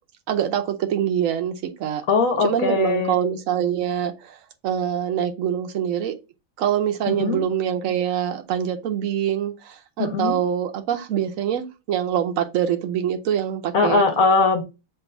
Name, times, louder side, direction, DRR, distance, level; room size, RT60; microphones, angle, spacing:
voice 1, 0.3-2.0 2.4-4.4 4.6-6.1 6.6-14.0, right 9 dB, 80° right, 1.1 m, -24 dB
voice 2, 2.1-3.2 7.1-7.4 10.0-10.4 13.7-14.6, left 4 dB, 85° left, 1.5 m, -20 dB
7.6 x 2.6 x 2.5 m
omnidirectional pair, 1.4 m